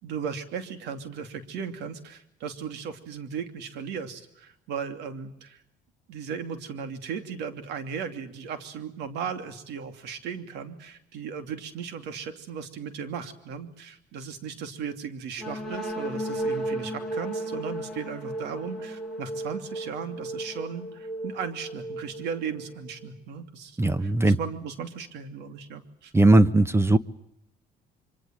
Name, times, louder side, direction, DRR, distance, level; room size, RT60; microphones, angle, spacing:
voice 1, 0.0-5.6 6.1-26.1, right 6 dB, 85° right, 9 dB, 2.9 m, -36 dB
sound 1, 15.4-23.1, right 1 dB, ahead, 5.3 m, -34 dB
voice 2, 23.8-24.4 26.1-27.0, right 2 dB, 15° right, 15 dB, 1.1 m, -18 dB
25.5 x 25.0 x 7.7 m, 0.80 s
cardioid pair, 110°, 17 cm